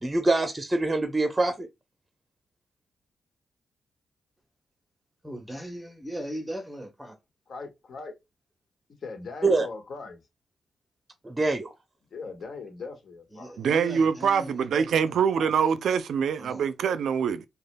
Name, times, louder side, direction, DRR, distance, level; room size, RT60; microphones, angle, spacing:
voice 1, 0.0-1.7 9.4-9.7 11.2-11.7, right 2 dB, 20° right, 0.7 m, -24 dB
voice 2, 5.2-7.2 13.3-16.0 16.4-16.7, equal, ahead, 1.0 m, -39 dB
voice 3, 7.5-8.1 9.0-10.2 12.1-13.5, left 4 dB, 65° left, 1.3 m, -39 dB
voice 4, 13.6-17.5, right 7 dB, 80° right, 0.4 m, -24 dB
5.0 x 2.3 x 2.2 m
cardioid pair, 70°, 0 cm